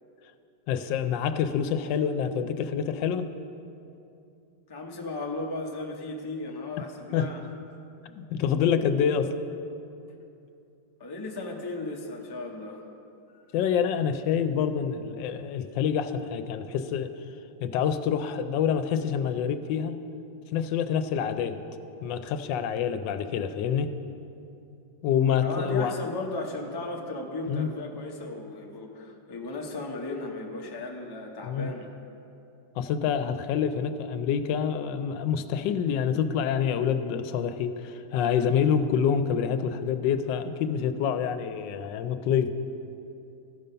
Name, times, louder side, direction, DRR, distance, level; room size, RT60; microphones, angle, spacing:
voice 1, 0.7-3.3 7.1-7.3 8.2-9.3 13.5-17.1 17.6-20.0 20.5-21.6 22.0-23.9 25.0-25.9 27.5-27.7 31.4-31.7 32.8-42.5, left 7 dB, 85° left, 10 dB, 1.3 m, -27 dB
voice 2, 4.7-7.4 11.0-12.8 25.4-31.9, left 2 dB, 30° left, 1 dB, 0.4 m, -35 dB
14.0 x 5.3 x 5.6 m, 2.7 s
omnidirectional pair, 1.9 m